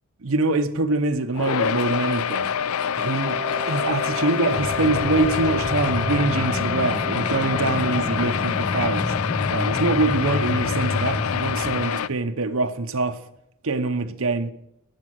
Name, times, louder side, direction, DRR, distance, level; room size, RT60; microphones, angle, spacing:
voice 1, 0.2-2.5 3.0-9.1 9.5-13.2 13.6-14.5, right 3 dB, 75° right, 0.8 m, -24 dB
sound 1, 1.3-12.1, left 8 dB, 80° left, 0.4 m, -26 dB
sound 2, 2.9-9.5, right 3 dB, 30° right, 0.5 m, -36 dB
sound 3, 4.5-11.9, left 2 dB, 25° left, 0.5 m, -29 dB
12.0 x 8.9 x 6.4 m
head